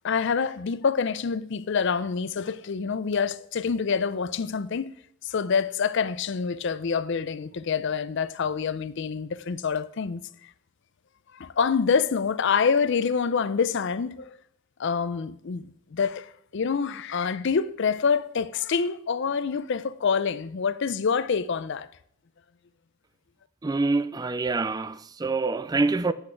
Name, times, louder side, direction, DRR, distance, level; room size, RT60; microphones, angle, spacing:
voice 1, 0.0-4.9 5.2-10.3 11.3-14.4 14.8-21.9, left 6 dB, 60° left, 0.5 m, -26 dB
voice 2, 23.6-26.1, right 3 dB, 20° right, 0.3 m, -26 dB
8.5 x 8.0 x 4.5 m
head